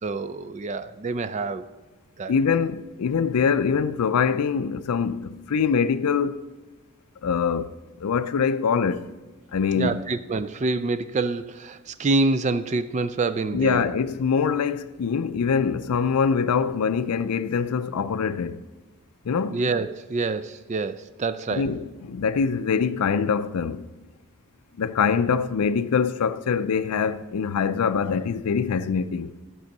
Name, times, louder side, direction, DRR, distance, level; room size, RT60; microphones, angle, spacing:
voice 1, 0.0-1.7 2.2-2.3 9.7-13.9 19.5-21.7 25.3-25.4, right 3 dB, 30° right, 0.3 m, -27 dB
voice 2, 2.3-6.4 7.2-7.7 8.0-9.1 9.5-10.0 13.5-18.6 19.2-19.6 21.5-23.9 24.8-29.3, left 6 dB, 90° left, 0.4 m, -24 dB
12.0 x 6.2 x 6.5 m
head